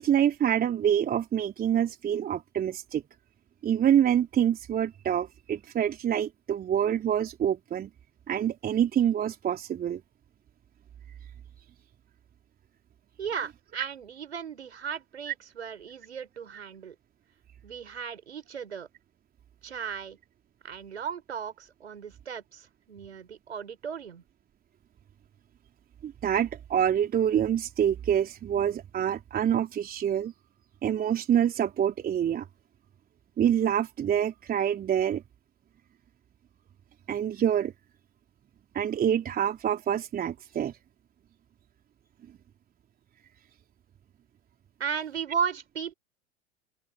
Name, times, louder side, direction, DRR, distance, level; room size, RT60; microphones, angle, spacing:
voice 1, 0.0-3.0 3.6-7.9 8.3-10.0 26.0-30.3 30.8-32.4 33.4-35.2 37.1-37.7 38.7-40.7, right 9 dB, 25° right, 3.7 m, -26 dB
voice 2, 13.2-17.0 17.6-18.9 19.6-20.2 20.6-24.2 44.8-45.9, right 7 dB, 75° right, 5.7 m, -35 dB
open air
figure-of-eight pair, 90°, 34 cm